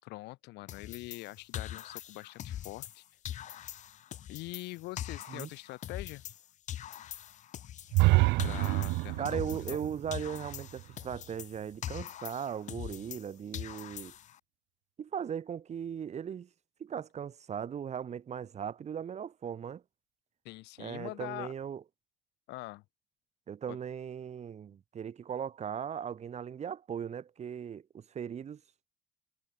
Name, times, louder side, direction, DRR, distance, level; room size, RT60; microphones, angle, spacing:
voice 1, 0.0-3.0 4.3-6.2 8.4-9.8 20.4-21.5 22.5-22.8 23.7-23.8, left 20 dB, 90° left, 2.9 m, -43 dB
sound 1, 0.7-3.0 3.3-6.4 6.7-9.9 10.1-13.3 13.5-14.4, left 11 dB, 45° left, 0.5 m, -42 dB
sound 2, 7.9-11.8, right 23 dB, 90° right, 0.4 m, -28 dB
voice 2, 9.2-14.1 15.0-16.5 16.8-19.8 20.8-21.8 23.5-28.6, right 8 dB, 40° right, 1.4 m, -38 dB
cardioid pair, 110°, 17 cm